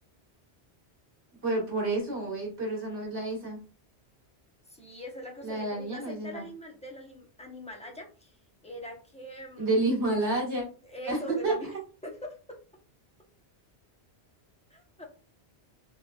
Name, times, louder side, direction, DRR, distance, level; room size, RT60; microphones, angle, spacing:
voice 1, 1.4-3.6 5.4-6.5 9.6-10.6 11.1-11.2 11.4-11.5, right 2 dB, 80° right, -2 dB, 2.0 m, -29 dB
voice 2, 4.7-8.4 8.6-9.8 10.8-11.7 12.0-12.4 14.7-15.1, left 1 dB, 5° left, 1 dB, 0.8 m, -42 dB
4.0 x 3.3 x 2.3 m, 0.36 s
omnidirectional pair, 1.1 m